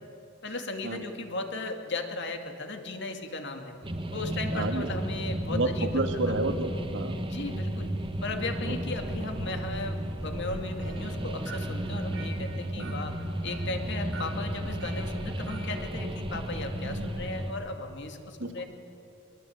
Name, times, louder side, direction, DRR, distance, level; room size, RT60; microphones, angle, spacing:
voice 1, 0.4-3.7 4.1-6.0 6.3-6.4 7.3-7.9 8.2-13.2 13.4-18.6, left 2 dB, 60° left, 5 dB, 2.3 m, -36 dB
sound 1, 3.8-17.5, right 1 dB, 25° right, 1.5 m, -33 dB
voice 2, 4.5-4.9 5.5-7.2 8.7-8.8 12.8-13.0 16.8-17.1 18.4-18.6, right 2 dB, 65° right, 6 dB, 1.9 m, -30 dB
sound 2, 10.5-15.8, right 3 dB, 90° right, 6.2 m, -47 dB
22.5 x 22.5 x 8.8 m, 2.6 s
head